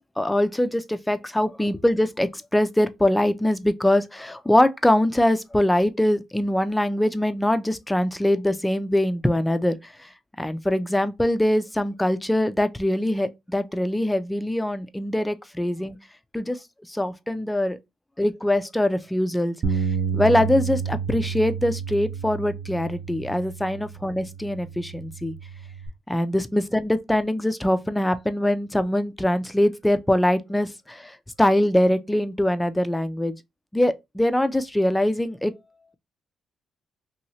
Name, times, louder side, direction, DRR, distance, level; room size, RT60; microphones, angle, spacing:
voice 1, 0.2-10.1 10.4-16.0 16.3-16.6 16.9-17.8 18.2-19.8 20.1-25.3 26.1-33.3 33.7-35.5, left 1 dB, 10° left, 0.4 m, -23 dB
Bass guitar, 19.6-25.9, right 6 dB, 45° right, 0.6 m, -30 dB
2.9 x 2.7 x 2.7 m
cardioid pair, 90°, 0 cm